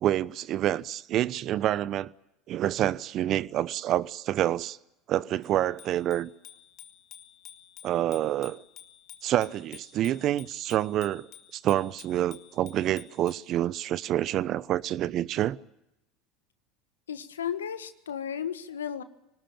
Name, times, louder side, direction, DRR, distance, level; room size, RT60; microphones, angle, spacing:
voice 1, 0.0-2.1 2.5-4.8 5.1-6.3 7.8-8.6 9.2-15.6, right 12 dB, 50° right, 0.8 m, -27 dB
Bicycle bell, 5.4-13.5, left 11 dB, 55° left, 2.1 m, -51 dB
voice 2, 17.1-19.0, left 8 dB, 85° left, 1.5 m, -34 dB
25.0 x 19.5 x 8.9 m
hypercardioid pair, 80°, 0 cm